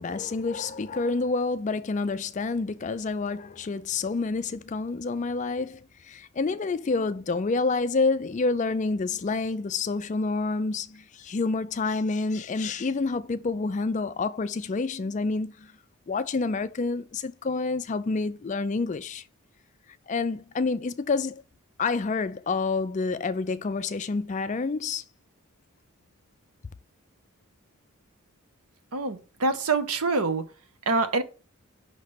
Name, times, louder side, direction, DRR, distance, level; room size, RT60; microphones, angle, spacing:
voice 1, 0.0-15.7 16.1-19.2 20.1-21.4 21.8-25.0, left 3 dB, 35° left, 0.3 m, -28 dB
voice 2, 28.9-30.4 30.9-31.2, right 3 dB, 80° right, 0.9 m, -25 dB
5.8 x 3.2 x 5.6 m
head